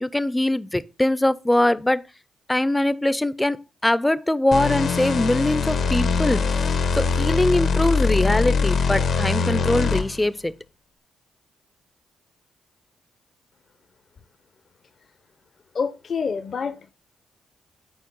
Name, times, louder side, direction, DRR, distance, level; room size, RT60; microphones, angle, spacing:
voice 1, 0.0-2.0 2.5-3.6 3.8-6.4 7.0-10.5, left 1 dB, 10° left, 0.5 m, -22 dB
sound 1, 4.5-10.3, left 5 dB, 70° left, 1.1 m, -22 dB
voice 2, 15.7-16.9, left 5 dB, 55° left, 0.8 m, -27 dB
7.2 x 4.4 x 5.3 m
cardioid pair, 65°, 0 cm